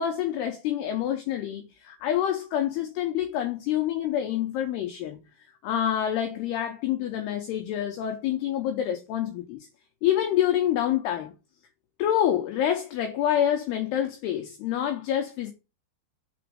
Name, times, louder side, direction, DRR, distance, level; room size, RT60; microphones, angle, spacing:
voice 1, 0.0-5.2 5.6-9.7 10.0-11.3 12.0-15.5, left 10 dB, 75° left, 2.6 m, -27 dB
6.0 x 4.3 x 6.2 m
omnidirectional pair, 5.2 m